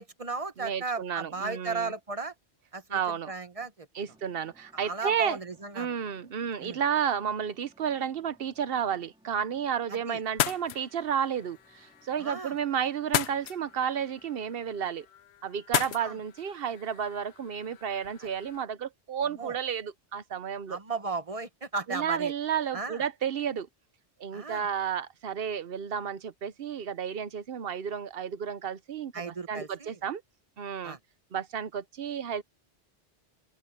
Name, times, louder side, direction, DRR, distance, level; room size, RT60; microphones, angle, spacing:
voice 1, 0.0-2.3 2.7-3.9 4.7-5.9 6.6-6.8 9.9-10.2 12.2-12.6 16.0-16.2 18.2-18.3 19.4-19.6 20.7-22.3 22.7-23.0 24.3-24.7 29.1-30.0 30.8-31.0, right 4 dB, 35° right, 1.1 m, -35 dB
voice 2, 0.6-1.9 2.9-3.3 3.9-5.4 5.7-15.1 15.4-20.8 21.9-23.7 24.2-30.2 30.6-31.0 31.3-32.4, right 8 dB, 65° right, 1.0 m, -32 dB
sound 1, 4.1-15.0, equal, 5° right, 2.7 m, -65 dB
sound 2, 10.2-18.6, left 11 dB, 85° left, 0.9 m, -36 dB
open air
omnidirectional pair, 1.1 m